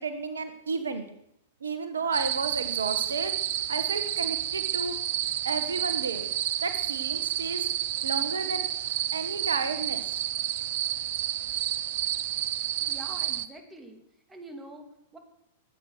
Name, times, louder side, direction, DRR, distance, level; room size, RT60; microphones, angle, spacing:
voice 1, 0.0-1.1 1.6-5.0 5.4-6.3 6.6-7.7 8.0-8.7 9.1-10.0, right 4 dB, 80° right, 10 dB, 1.5 m, -32 dB
sound 1, 2.1-13.5, right 12 dB, 55° right, 0.7 m, -30 dB
voice 2, 12.8-14.0 14.3-15.2, right 1 dB, 15° right, 5 dB, 3.0 m, -45 dB
21.0 x 8.9 x 6.3 m, 0.76 s
hypercardioid pair, 105°, 0 cm